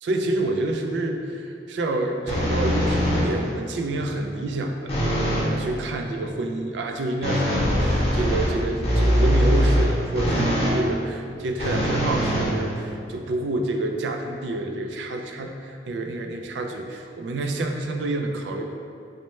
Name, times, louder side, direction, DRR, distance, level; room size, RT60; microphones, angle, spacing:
voice 1, 0.0-4.9 5.3-18.6, right 2 dB, 90° right, 4 dB, 0.3 m, -28 dB
sound 1, 2.3-3.5 4.9-5.5 7.2-10.8 11.6-13.1, equal, 35° left, 0.8 m, -22 dB
3.1 x 2.1 x 4.2 m, 2.4 s
head